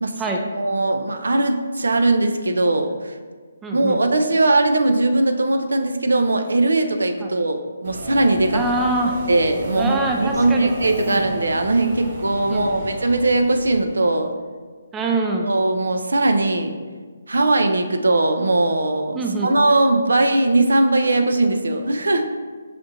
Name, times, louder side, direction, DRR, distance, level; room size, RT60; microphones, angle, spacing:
voice 1, 0.6-3.2 3.7-8.6 9.3-14.3 15.4-16.7 17.3-22.2, right 2 dB, 85° right, 6 dB, 0.4 m, -19 dB
voice 2, 3.6-4.0 7.2-7.3 8.5-9.2 9.8-10.7 11.1-11.2 12.5-12.9 14.9-15.6 19.1-19.5, right 2 dB, 10° right, 1 dB, 0.3 m, -24 dB
Subway metro underground, 7.8-14.1, right 1 dB, 45° right, 0.9 m, -33 dB
5.7 x 2.5 x 2.7 m, 1.5 s
hypercardioid pair, 155°, 0 cm